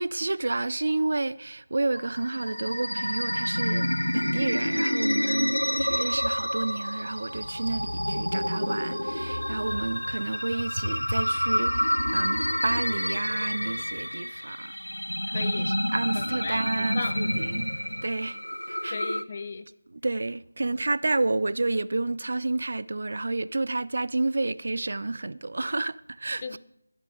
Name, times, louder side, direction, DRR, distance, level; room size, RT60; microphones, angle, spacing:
voice 1, 0.0-14.8 15.4-17.7 18.0-18.4 18.7-19.0 20.0-26.4, right 2 dB, 50° right, 0.4 m, -30 dB
sound 1, 2.0-19.2, equal, 85° left, 0.7 m, -28 dB
voice 2, 15.3-15.7 16.1-17.2 18.9-19.7 26.4-26.6, left 4 dB, 30° left, 0.7 m, -36 dB
14.0 x 12.0 x 3.7 m
figure-of-eight pair, 165°, 0 cm